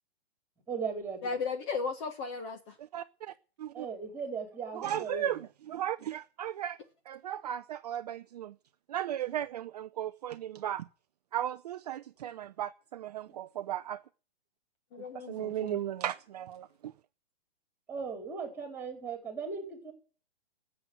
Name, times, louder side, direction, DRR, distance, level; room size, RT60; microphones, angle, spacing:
voice 1, 0.7-1.3 3.7-5.4 13.3-13.4 17.9-19.9, right 5 dB, 5° right, 4.3 m, -38 dB
voice 2, 1.2-2.8 14.9-15.8, left 5 dB, 25° left, 1.3 m, -35 dB
voice 3, 2.9-3.3 3.6-3.9 4.7-5.4 5.7-6.8 7.1-8.5 8.9-10.9 11.3-14.0 15.1-16.7, right 11 dB, 40° right, 0.6 m, -36 dB
14.0 x 7.8 x 9.2 m
hypercardioid pair, 155°, 32 cm